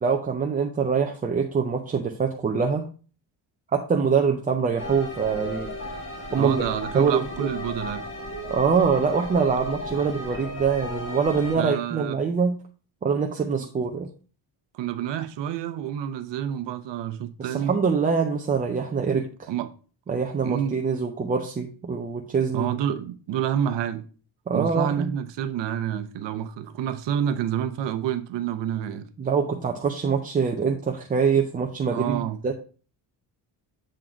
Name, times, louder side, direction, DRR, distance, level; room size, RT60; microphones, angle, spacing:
voice 1, 0.0-2.9 3.7-5.7 6.3-6.7 6.9-7.5 8.5-12.6 13.0-14.1 17.4-19.5 20.1-22.7 24.5-25.1 29.2-32.5, right 5 dB, 20° right, 0.3 m, -24 dB
sound 1, 4.8-11.6, left 1 dB, 30° left, 1.4 m, -35 dB
voice 2, 6.4-8.0 11.6-12.2 13.6-13.7 14.7-17.7 19.5-19.7 20.4-20.8 22.5-24.0 24.5-29.1 31.9-32.4, right 10 dB, 70° right, 0.8 m, -28 dB
7.6 x 3.8 x 4.4 m
cardioid pair, 180°, 45 cm